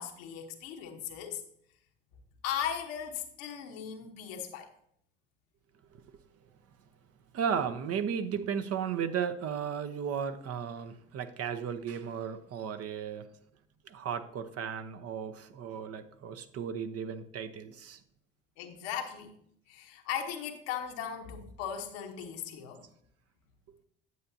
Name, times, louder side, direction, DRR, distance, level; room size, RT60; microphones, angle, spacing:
voice 1, 0.0-1.4 2.4-4.7 18.6-19.3 19.7-22.8, left 9 dB, 80° left, 4 dB, 1.2 m, -37 dB
voice 2, 7.3-13.3 13.8-18.0, right 7 dB, 55° right, 10 dB, 0.9 m, -35 dB
9.6 x 7.8 x 2.7 m, 0.69 s
hypercardioid pair, 65°, 30 cm